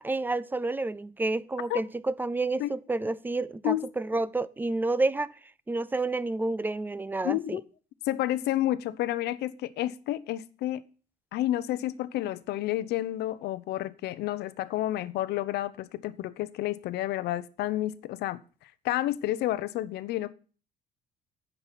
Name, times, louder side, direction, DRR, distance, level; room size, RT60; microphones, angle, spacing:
voice 1, 0.0-5.3 5.7-7.6, right 2 dB, 10° right, 0.4 m, -29 dB
voice 2, 3.6-4.2 7.2-7.6 8.0-10.8 11.3-20.3, left 14 dB, 80° left, 0.7 m, -30 dB
9.9 x 5.5 x 6.0 m
cardioid pair, 110°, 17 cm